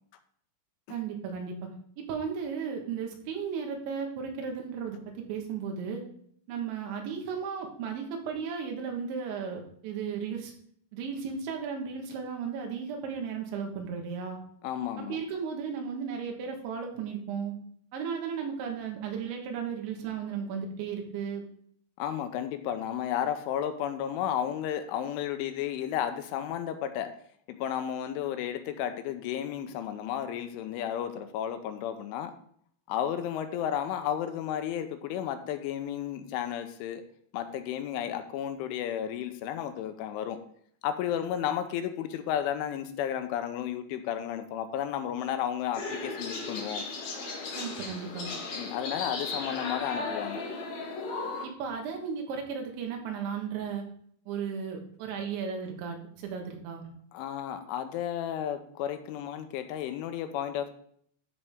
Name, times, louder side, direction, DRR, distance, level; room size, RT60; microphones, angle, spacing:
voice 1, 0.9-1.7 2.0-5.0 5.3-6.0 6.5-10.5 10.9-14.4 15.0-17.5 17.9-21.4 47.5-48.3 51.4-53.8 54.3-56.9, right 6 dB, 75° right, 2 dB, 3.6 m, -35 dB
voice 2, 14.6-15.2 22.0-27.1 27.5-32.3 32.9-37.0 37.3-40.4 40.8-46.8 48.6-50.4 57.1-60.7, left 10 dB, 85° left, 8 dB, 3.2 m, -33 dB
sound 1, 45.7-51.5, left 3 dB, 65° left, 1.7 m, -36 dB
13.0 x 5.4 x 3.5 m, 0.63 s
omnidirectional pair, 5.6 m